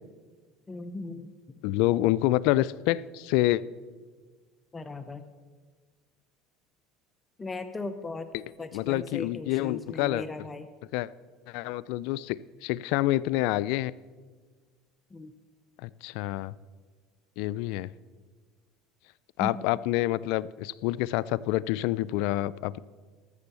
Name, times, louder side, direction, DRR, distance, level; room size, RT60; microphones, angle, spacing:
voice 1, 0.7-1.3 4.7-5.2 7.4-8.3 8.6-10.7 15.1-15.3 19.4-19.6, left 3 dB, 20° left, 11 dB, 0.7 m, -37 dB
voice 2, 1.6-3.6 8.3-8.4 8.7-10.3 10.9-11.1 11.5-13.9 15.8-16.6 17.4-17.9 19.4-22.8, left 16 dB, 70° left, 20 dB, 0.3 m, -27 dB
13.0 x 6.9 x 6.9 m, 1.5 s
supercardioid pair, 100°, 0 cm